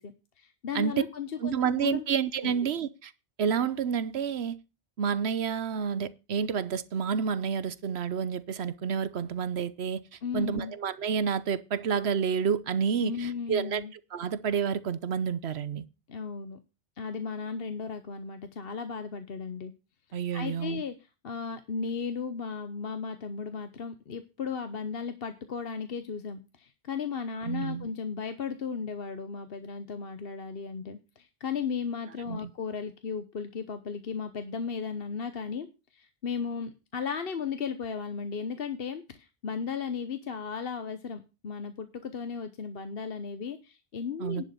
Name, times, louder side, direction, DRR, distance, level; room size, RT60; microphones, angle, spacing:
voice 1, 0.0-2.0 2.4-2.5 10.2-10.7 13.0-13.9 16.1-16.6 17.0-19.7 20.1-20.9 21.2-44.4, left 6 dB, 65° left, 1.2 m, -35 dB
voice 2, 1.4-3.1 3.4-4.6 5.0-10.0 10.3-13.8 14.1-15.8 20.1-20.8 27.4-27.9 32.3-32.4 44.2-44.4, right 7 dB, 75° right, 1.1 m, -29 dB
11.0 x 6.4 x 6.9 m
omnidirectional pair, 1.1 m